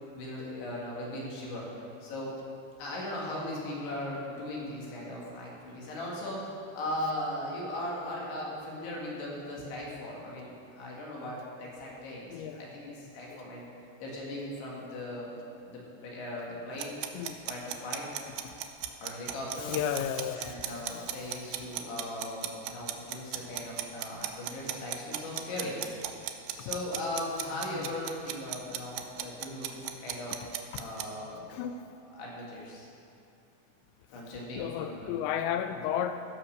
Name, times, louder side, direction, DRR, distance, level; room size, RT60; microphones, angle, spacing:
voice 1, 0.1-2.3 2.8-6.5 6.7-13.7 14.0-15.3 15.6-17.0 17.4-18.1 19.0-19.7 20.4-25.8 26.6-30.4 30.7-31.4 32.1-32.9 34.1-35.1 35.7-35.8, left 1 dB, 65° left, -4 dB, 3.9 m, -38 dB
voice 2, 12.3-12.6 13.3-13.4 17.2-17.4 18.4-18.5 19.6-20.7 27.7-27.9 30.7-30.8 31.5-31.9 34.6-36.3, left 9 dB, 85° left, 9 dB, 2.5 m, -33 dB
sound 1, 16.8-31.1, right 13 dB, 85° right, 2.5 m, -36 dB
15.0 x 5.7 x 6.6 m, 2.7 s
omnidirectional pair, 5.5 m